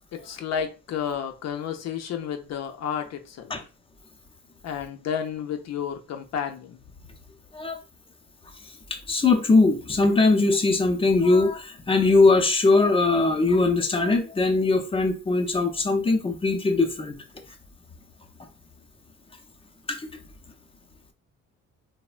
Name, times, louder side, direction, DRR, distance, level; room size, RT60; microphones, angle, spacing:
voice 1, 0.1-3.5 4.6-6.8, left 8 dB, 60° left, 0.6 m, -31 dB
voice 2, 8.9-17.1 19.9-20.1, left 3 dB, 20° left, 0.5 m, -21 dB
3.2 x 2.1 x 2.4 m
cardioid pair, 90°, 30 cm